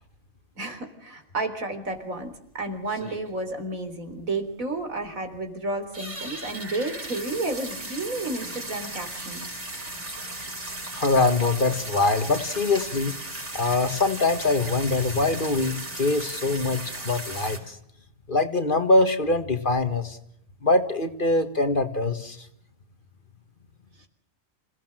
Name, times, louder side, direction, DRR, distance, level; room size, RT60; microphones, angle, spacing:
voice 1, 0.6-9.6 24.0-24.1, right 2 dB, 85° right, 7 dB, 4.1 m, -32 dB
sound 1, 1.9-2.0 2.3-2.4 2.8-3.5 3.9-4.0 4.1-4.2 4.6-4.7 5.2-5.5 5.8-17.6, right 2 dB, 60° right, 5.4 m, -36 dB
voice 2, 10.9-13.1 13.5-17.8 18.3-20.2 20.6-22.5, left 2 dB, 40° left, 8 dB, 1.8 m, -23 dB
27.5 x 17.5 x 7.7 m, 0.77 s
omnidirectional pair, 1.4 m